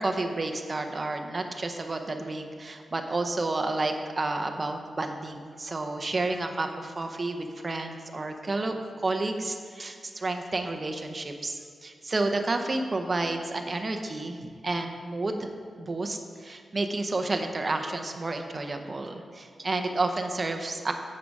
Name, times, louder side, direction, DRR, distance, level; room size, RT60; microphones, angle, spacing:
voice 1, 0.0-15.5 15.8-20.9, right 2 dB, 25° right, 5 dB, 0.7 m, -30 dB
9.3 x 7.5 x 4.7 m, 2.1 s
wide cardioid pair, 175°, 0 cm